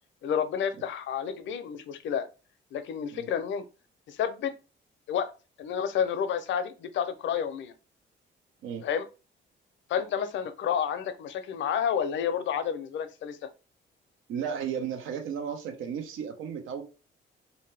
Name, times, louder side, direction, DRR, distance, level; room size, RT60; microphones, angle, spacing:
voice 1, 0.2-2.3 2.7-3.7 4.1-4.5 5.1-5.3 5.6-7.7 8.8-9.0 9.9-13.4, left 8 dB, 70° left, 0.5 m, -30 dB
voice 2, 14.3-16.8, right 7 dB, 85° right, 0.7 m, -34 dB
2.7 x 2.2 x 3.2 m
cardioid pair, 90°, 20 cm